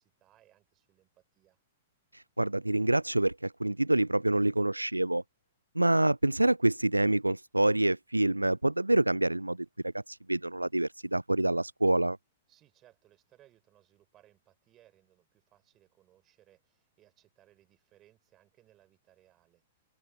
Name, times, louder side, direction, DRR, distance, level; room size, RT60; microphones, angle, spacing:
voice 1, 0.0-1.6 12.5-19.6, right 13 dB, 25° right, 5.7 m, -65 dB
voice 2, 2.1-5.2 5.7-12.2, right 1 dB, 85° right, 0.3 m, -27 dB
figure-of-eight pair, 105°, 0 cm